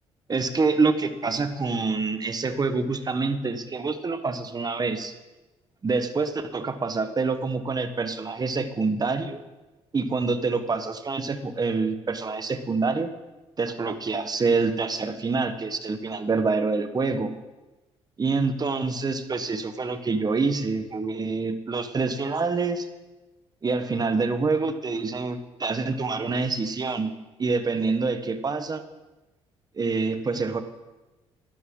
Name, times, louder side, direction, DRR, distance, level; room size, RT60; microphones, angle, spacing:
voice 1, 0.3-5.1 5.8-9.4 9.9-13.1 13.6-17.3 18.2-22.9 23.6-27.1 27.4-28.8 29.8-30.6, right 4 dB, 35° right, 9 dB, 1.2 m, -26 dB
12.0 x 11.0 x 3.8 m, 1.1 s
supercardioid pair, 70°, 12 cm